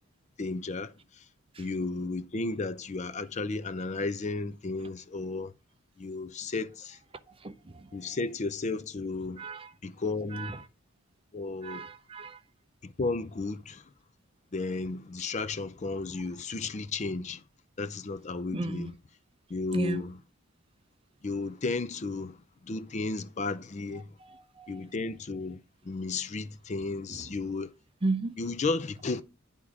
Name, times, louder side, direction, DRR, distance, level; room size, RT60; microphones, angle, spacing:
voice 1, 0.4-1.3 1.6-5.5 6.0-7.0 7.9-9.5 9.8-10.6 11.3-11.9 12.8-13.9 14.5-17.4 17.8-18.9 19.5-20.2 21.2-24.2 24.7-27.7 28.4-29.2, left 3 dB, 35° left, 0.4 m, -34 dB
voice 2, 11.6-12.4 18.5-18.9 19.7-20.0 24.3-24.7 28.0-28.3, right 2 dB, 25° right, 0.6 m, -33 dB
9.8 x 3.6 x 6.1 m
head